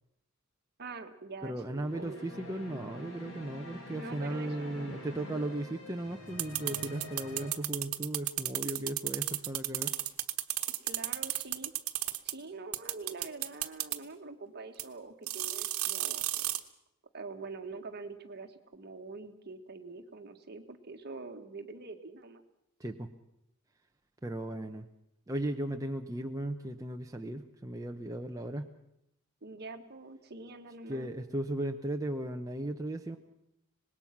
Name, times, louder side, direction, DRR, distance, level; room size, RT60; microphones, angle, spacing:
voice 1, 0.8-2.2 4.0-4.8 10.8-11.7 12.2-16.5 17.1-22.4 29.4-31.1, right 3 dB, 50° right, 6 dB, 1.7 m, -45 dB
voice 2, 1.4-10.0 22.8-23.1 24.2-24.9 25.3-28.7 30.9-33.2, right 1 dB, 15° right, 3 dB, 0.8 m, -36 dB
sound 1, 1.7-7.5, equal, 70° left, 5.4 m, -46 dB
sound 2, 6.4-12.3 12.7-14.0 14.8-14.9 15.3-16.6, right 15 dB, 90° right, 1.2 m, -33 dB
25.0 x 20.0 x 6.0 m, 0.81 s
head